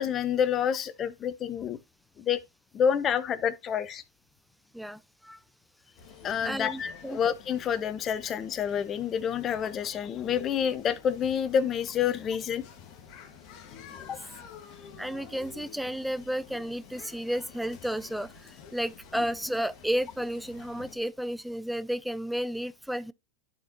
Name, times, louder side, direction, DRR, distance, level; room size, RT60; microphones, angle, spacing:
voice 1, 0.0-1.8 2.2-2.4 2.7-4.0 6.2-12.6 14.1-14.2, left 8 dB, 30° left, 0.8 m, -28 dB
voice 2, 4.7-5.4 6.4-7.2 13.9-14.0 15.0-23.1, equal, ahead, 0.3 m, -32 dB
sound 1, 6.0-21.0, left 7 dB, 50° left, 1.4 m, -49 dB
11.5 x 4.4 x 2.7 m
hypercardioid pair, 110°, 0 cm